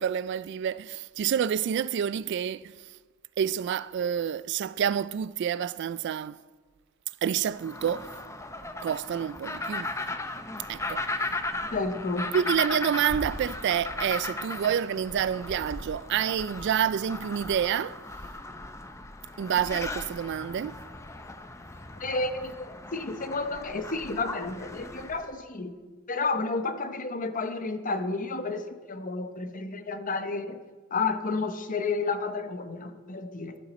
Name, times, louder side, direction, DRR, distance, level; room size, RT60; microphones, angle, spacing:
voice 1, 0.0-2.7 3.4-6.4 7.2-8.1 8.8-9.9 10.7-11.1 12.3-18.0 19.4-20.8, right 8 dB, 55° right, 0.3 m, -28 dB
sound 1, 7.5-25.3, left 2 dB, 15° left, 0.6 m, -37 dB
voice 2, 11.7-12.4 22.0-22.6 22.9-25.8 26.1-33.6, left 3 dB, 40° left, 0.9 m, -31 dB
16.0 x 12.0 x 4.2 m
head